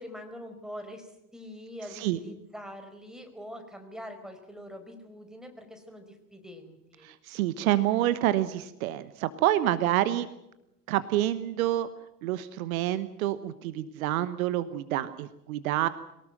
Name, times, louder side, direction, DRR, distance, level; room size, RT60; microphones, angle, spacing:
voice 1, 0.0-7.1, equal, ahead, 6 dB, 4.9 m, -44 dB
voice 2, 7.0-10.3 10.9-11.9 12.2-15.9, right 13 dB, 60° right, 14 dB, 1.2 m, -27 dB
23.0 x 18.5 x 7.8 m, 0.86 s
figure-of-eight pair, 70°, 47 cm